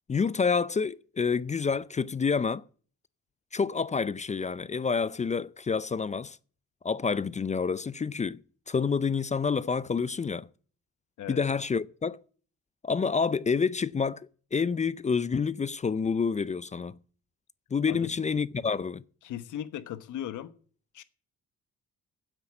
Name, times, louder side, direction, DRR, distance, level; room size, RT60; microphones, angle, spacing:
voice 1, 0.1-2.6 3.5-6.4 6.8-8.4 8.7-10.5 11.3-12.2 12.8-17.0 17.7-19.0, left 5 dB, 25° left, 0.5 m, -28 dB
voice 2, 19.2-20.5 20.9-21.0, left 11 dB, 80° left, 1.2 m, -37 dB
9.7 x 8.1 x 8.6 m
cardioid pair, 90°, 30 cm